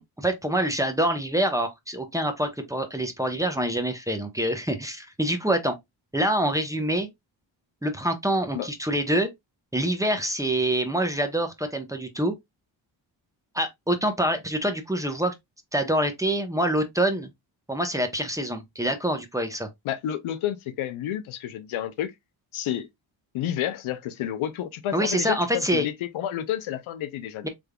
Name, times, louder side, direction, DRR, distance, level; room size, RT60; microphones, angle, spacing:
voice 1, 0.0-5.8 6.1-7.1 7.8-9.3 9.7-12.3 13.5-15.3 15.7-17.3 17.7-19.7 24.9-25.9 27.4-27.5, right 1 dB, 5° right, 0.8 m, -26 dB
voice 2, 19.9-22.1 22.5-22.9 23.3-27.5, left 11 dB, 90° left, 0.6 m, -30 dB
3.5 x 3.5 x 2.2 m
cardioid pair, 75°, 47 cm